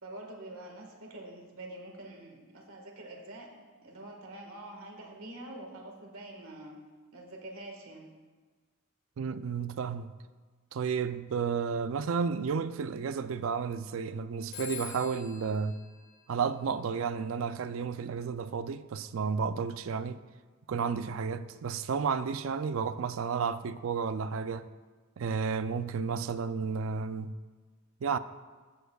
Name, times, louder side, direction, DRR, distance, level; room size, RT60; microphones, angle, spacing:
voice 1, 0.0-3.5 3.8-6.7 7.1-8.1, right 1 dB, 90° right, 1.6 m, -46 dB
voice 2, 9.2-10.1 10.7-15.8 16.3-20.2 20.7-24.7 25.2-27.3 28.0-28.2, right 6 dB, 70° right, 0.4 m, -32 dB
Telephone, 14.5-17.0, left 7 dB, 65° left, 2.1 m, -46 dB
14.5 x 6.9 x 2.3 m
head